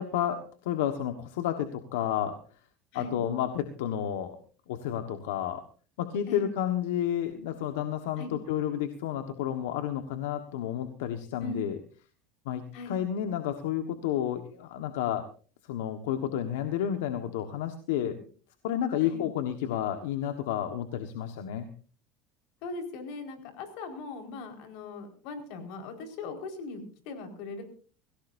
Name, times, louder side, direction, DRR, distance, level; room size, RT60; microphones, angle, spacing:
voice 1, 0.0-2.4 2.9-4.4 4.7-5.6 6.0-11.8 12.4-15.2 15.7-18.2 18.6-21.7, left 10 dB, 90° left, 8 dB, 1.4 m, -31 dB
voice 2, 22.6-27.6, left 3 dB, 70° left, 6 dB, 4.7 m, -39 dB
24.5 x 16.5 x 2.7 m, 0.40 s
supercardioid pair, 120°, 0 cm